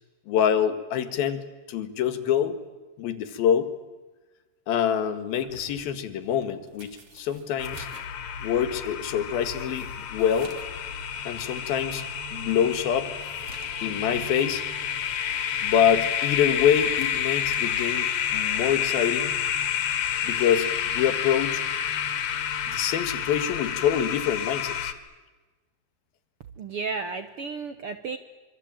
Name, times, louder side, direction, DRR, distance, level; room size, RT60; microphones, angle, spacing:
voice 1, 0.3-2.6 3.0-3.7 4.7-7.9 8.4-10.6 11.3-12.1 12.3-13.1 13.8-14.6 15.6-19.3 20.2-21.6 22.7-24.9, left 9 dB, 85° left, 11 dB, 3.6 m, -25 dB
sound 1, 5.4-10.8 11.2-11.3 11.8-11.9 12.4-14.6 15.0-15.2 16.4-18.4 19.5-19.7, right 2 dB, 40° right, 3.9 m, -51 dB
sound 2, 7.6-24.9, left 9 dB, 60° left, 2.8 m, -29 dB
sound 3, 7.8-23.7, right 4 dB, 25° right, 3.3 m, -47 dB
voice 2, 26.6-28.2, right 4 dB, 65° right, 9 dB, 1.4 m, -33 dB
26.0 x 25.0 x 8.9 m, 1.2 s
omnidirectional pair, 4.1 m